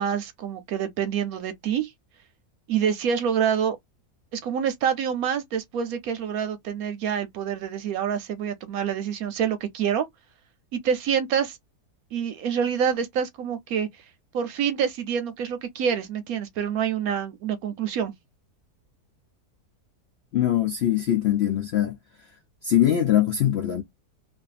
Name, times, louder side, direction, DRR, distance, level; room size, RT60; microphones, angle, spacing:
voice 1, 0.0-1.9 2.7-3.8 4.3-10.1 10.7-11.6 12.1-13.9 14.3-18.1, right 8 dB, 70° right, 1.0 m, -26 dB
voice 2, 20.3-22.0 22.6-23.8, left 11 dB, 65° left, 0.6 m, -22 dB
2.6 x 2.5 x 2.3 m
omnidirectional pair, 1.7 m